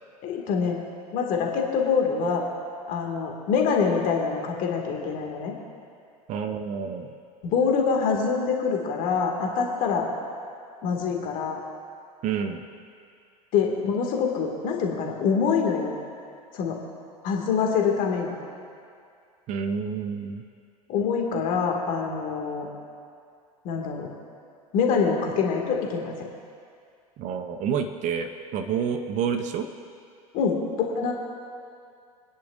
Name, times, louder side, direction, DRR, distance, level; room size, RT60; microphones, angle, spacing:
voice 1, 0.2-0.8 1.1-2.4 2.9-5.5 7.4-10.1 10.8-11.6 13.5-15.9 16.5-16.8 17.2-18.4 20.9-22.7 23.6-24.1 24.7-26.3 30.3-30.6 30.9-31.1, left 5 dB, 45° left, 0 dB, 2.2 m, -25 dB
voice 2, 6.3-7.1 12.2-12.7 19.5-20.4 27.2-29.7, right 7 dB, 40° right, 7 dB, 0.8 m, -29 dB
25.5 x 10.5 x 2.6 m, 2.4 s
figure-of-eight pair, 75°, 20 cm